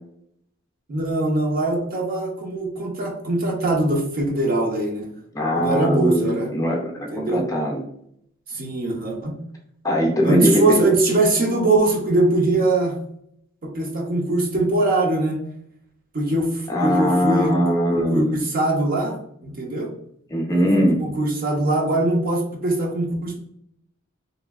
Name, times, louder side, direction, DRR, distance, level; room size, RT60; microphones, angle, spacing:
voice 1, 0.9-5.1 5.5-6.5 7.1-7.4 8.5-9.3 10.2-12.9 13.6-15.4 16.1-17.5 17.9-19.9 21.0-23.4, right 2 dB, 45° right, 1 dB, 0.6 m, -22 dB
voice 2, 5.3-7.8 9.8-10.8 16.7-18.3 20.3-21.0, equal, 15° left, 0 dB, 0.5 m, -21 dB
3.0 x 2.6 x 2.3 m, 0.70 s
head